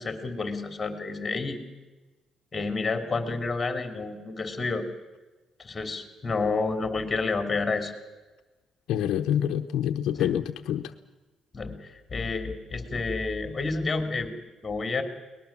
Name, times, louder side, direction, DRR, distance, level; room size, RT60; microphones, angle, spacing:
voice 1, 0.0-1.6 2.5-4.8 5.6-7.9 10.1-10.3 11.5-14.4 14.6-15.0, left 3 dB, 20° left, 7 dB, 3.2 m, -30 dB
voice 2, 8.9-10.9, left 10 dB, 80° left, 6 dB, 0.9 m, -27 dB
22.5 x 20.0 x 7.4 m, 1.2 s
cardioid pair, 120°, 0 cm